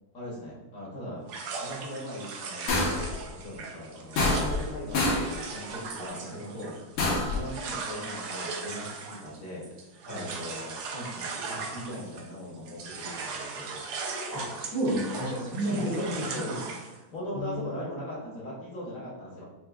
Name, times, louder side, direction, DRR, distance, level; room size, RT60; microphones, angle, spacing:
voice 1, 0.1-1.2 1.6-6.8 7.3-9.6 10.0-13.9 15.6-19.4, equal, 50° left, -5 dB, 1.1 m, -39 dB
sound 1, 1.3-12.4 12.7-17.0, right 4 dB, 70° right, 1.0 m, -38 dB
sound 2, 2.7-3.1 4.2-4.7 4.9-5.3 7.0-7.4, left 2 dB, 80° left, 1.7 m, -26 dB
voice 2, 14.3-15.8 17.3-17.8, right 1 dB, 15° right, -6 dB, 0.6 m, -31 dB
6.1 x 2.6 x 2.3 m, 1.1 s
omnidirectional pair, 2.3 m